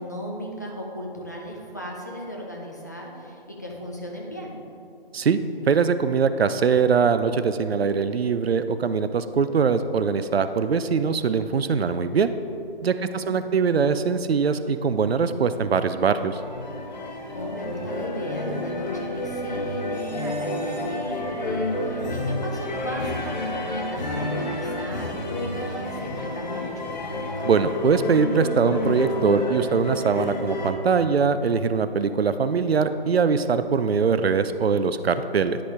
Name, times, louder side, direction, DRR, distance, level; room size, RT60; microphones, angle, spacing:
voice 1, 0.0-4.6 12.9-13.6 17.3-26.9, equal, 20° left, -2 dB, 0.4 m, -36 dB
voice 2, 5.7-12.3 12.8-16.4 27.4-35.6, right 5 dB, 80° right, 11 dB, 0.5 m, -22 dB
sound 1, 15.7-30.7, left 1 dB, 45° left, 1.0 m, -30 dB
10.0 x 4.9 x 3.5 m, 2.6 s
figure-of-eight pair, 150°, 30 cm